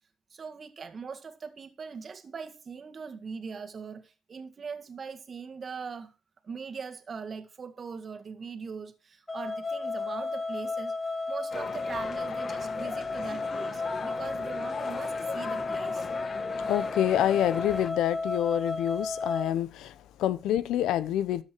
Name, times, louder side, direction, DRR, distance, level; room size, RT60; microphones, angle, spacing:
voice 1, 0.3-6.1 6.4-10.9 11.3-16.1, right 5 dB, 45° right, 1.9 m, -41 dB
sound 1, 9.3-19.5, left 3 dB, 20° left, 2.1 m, -33 dB
sound 2, 11.5-17.9, left 5 dB, 45° left, 1.2 m, -39 dB
voice 2, 16.7-21.4, left 11 dB, 85° left, 0.8 m, -27 dB
13.5 x 7.9 x 4.5 m
cardioid pair, 90°, 0 cm